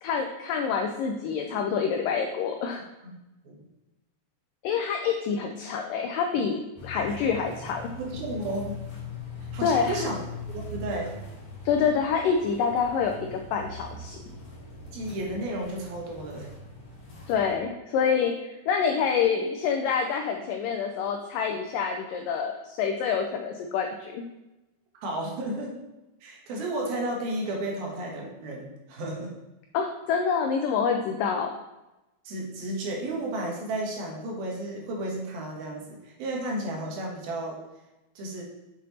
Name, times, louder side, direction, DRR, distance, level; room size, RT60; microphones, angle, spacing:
voice 1, 0.0-2.8 4.6-7.9 9.6-10.1 11.7-14.2 17.3-24.2 29.7-31.5, left 6 dB, 85° left, 4 dB, 1.9 m, -27 dB
sound 1, 6.8-17.5, left 3 dB, 45° left, 3.0 m, -41 dB
voice 2, 8.0-8.8 9.5-10.2 10.5-11.2 14.9-16.5 25.0-25.8 26.2-29.4 32.2-37.6 38.2-38.4, right 1 dB, 70° right, -1 dB, 3.3 m, -33 dB
7.5 x 6.3 x 4.2 m, 1.0 s
omnidirectional pair, 4.5 m